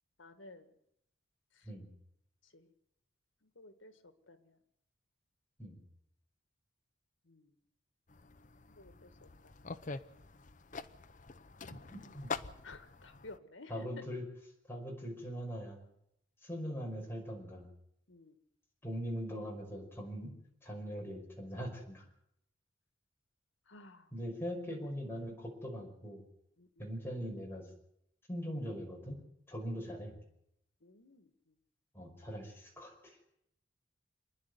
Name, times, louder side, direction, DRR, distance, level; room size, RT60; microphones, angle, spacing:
voice 1, 0.2-0.7 1.5-1.7 2.4-2.7 3.4-4.6 7.2-7.6 8.7-9.7 12.6-14.0 18.1-18.4 23.7-24.1 26.6-26.9 30.8-31.6, left 2 dB, 80° left, 9 dB, 1.9 m, -55 dB
sound 1, 8.1-13.4, left 4 dB, 40° left, 0.8 m, -45 dB
voice 2, 11.7-12.3 13.7-14.2 14.7-15.9 16.4-17.7 18.8-20.3 20.6-22.1 24.1-26.2 26.8-27.6 28.3-29.2 29.5-30.2 31.9-33.2, equal, 10° left, -1 dB, 5.4 m, -41 dB
27.5 x 10.5 x 9.7 m, 0.77 s
head